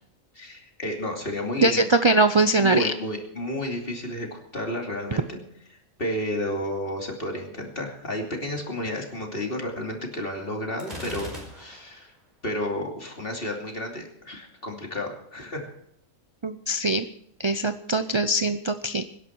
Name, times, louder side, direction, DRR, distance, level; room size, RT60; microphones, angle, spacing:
voice 1, 0.3-1.8 2.6-5.4 5.7-12.1 12.4-15.7, left 1 dB, 40° left, 1 dB, 3.0 m, -31 dB
voice 2, 1.6-2.9 16.4-17.1 17.4-19.0, right 2 dB, 50° right, 10 dB, 0.3 m, -22 dB
Gunshot gunfire, 10.8-12.0, equal, 30° right, 5.1 m, -38 dB
25.0 x 10.5 x 4.7 m, 0.72 s
omnidirectional pair, 1.5 m